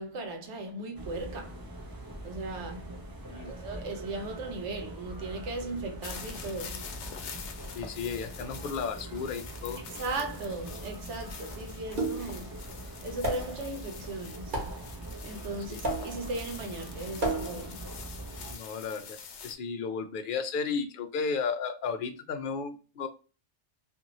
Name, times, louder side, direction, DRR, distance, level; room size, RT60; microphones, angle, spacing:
voice 1, 0.0-1.5 2.2-2.9 3.5-6.9 10.0-12.5 13.0-14.5 15.2-17.8, right 2 dB, 85° right, 1.1 m, -37 dB
sound 1, 0.9-18.6, right 1 dB, 25° right, 0.5 m, -43 dB
sound 2, 6.0-19.5, left 6 dB, 85° left, 0.9 m, -46 dB
voice 2, 7.7-9.8 15.7-15.8 18.5-23.1, left 5 dB, 60° left, 0.6 m, -34 dB
sound 3, 12.0-12.4 13.2-13.7 14.5-14.9 15.8-16.3 17.2-17.7, right 2 dB, 50° right, 1.1 m, -32 dB
2.6 x 2.6 x 2.9 m
omnidirectional pair, 1.2 m